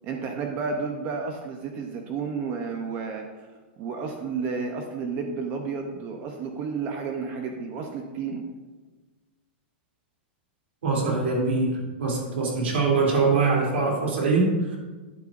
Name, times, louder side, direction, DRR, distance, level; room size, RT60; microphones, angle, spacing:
voice 1, 0.0-3.3 3.8-8.4, right 5 dB, 25° right, 4 dB, 0.7 m, -31 dB
voice 2, 10.8-14.8, right 3 dB, 90° right, -2 dB, 3.0 m, -23 dB
11.5 x 8.5 x 2.6 m, 1.3 s
supercardioid pair, 170°, 6 cm